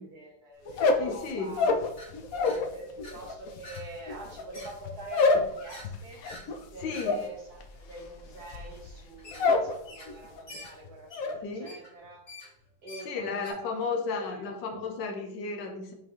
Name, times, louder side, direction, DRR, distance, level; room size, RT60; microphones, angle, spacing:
voice 1, 0.0-1.6 2.3-6.2 6.7-12.2 12.8-14.5, right 2 dB, 45° right, -2 dB, 2.0 m, -45 dB
sound 1, 0.6-2.7 3.0-9.8 10.1-10.6 10.8-11.4, left 3 dB, 80° left, 0.7 m, -28 dB
voice 2, 1.0-1.6 6.8-7.2 11.4-11.7 13.0-15.9, left 4 dB, 60° left, 3 dB, 1.6 m, -33 dB
sound 2, 2.0-2.1 2.4-2.6 3.0-3.1 3.6-3.8 4.1-4.7 5.2-5.3 5.7-5.9 6.2-6.4 6.9-7.1 9.2-9.5 9.8-10.2 10.5-13.5, left 2 dB, 45° left, 2.8 m, -46 dB
5.8 x 5.6 x 3.1 m, 0.76 s
omnidirectional pair, 2.4 m